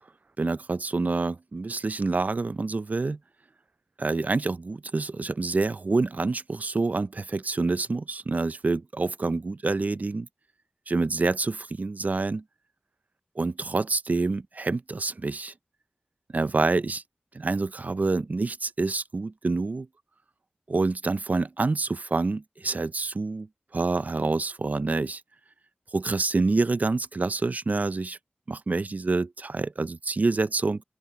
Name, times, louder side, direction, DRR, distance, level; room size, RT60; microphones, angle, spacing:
voice 1, 0.4-3.2 4.0-10.3 10.9-12.4 13.4-15.5 16.3-17.0 17.3-19.9 20.7-23.5 23.7-25.2 25.9-28.2 28.5-30.8, right 3 dB, 50° right, 0.5 m, -27 dB
open air
wide cardioid pair, 65°, 3 cm